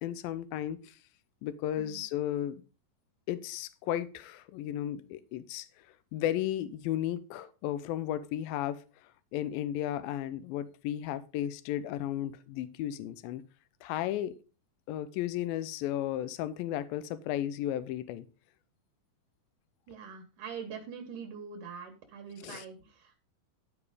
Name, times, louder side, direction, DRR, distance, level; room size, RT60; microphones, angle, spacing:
voice 1, 0.0-1.0 1.4-2.6 3.3-5.7 6.1-8.8 9.3-13.4 13.8-14.4 14.9-18.3 22.4-22.7, left 12 dB, 85° left, 13 dB, 2.0 m, -34 dB
voice 2, 19.9-23.2, right 6 dB, 65° right, 4 dB, 2.2 m, -43 dB
12.0 x 5.0 x 4.9 m, 0.35 s
omnidirectional pair, 4.7 m